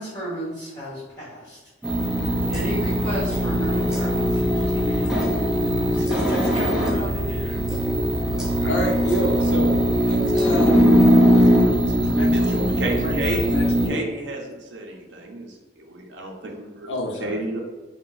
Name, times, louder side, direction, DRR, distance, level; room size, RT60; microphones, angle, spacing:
voice 1, 0.0-1.6 2.5-7.8, equal, 20° left, -14 dB, 1.3 m, -33 dB
sound 1, 1.8-13.9, equal, 5° right, 0.5 m, -20 dB
voice 2, 5.9-6.7 7.4-7.6 8.6-9.8 10.0-10.8 11.3-14.0 16.9-17.4, equal, 80° left, 0 dB, 0.6 m, -29 dB
voice 3, 12.8-13.4 13.9-16.9 17.2-17.6, right 2 dB, 70° right, 1 dB, 0.6 m, -31 dB
2.5 x 2.2 x 3.7 m, 1.2 s
head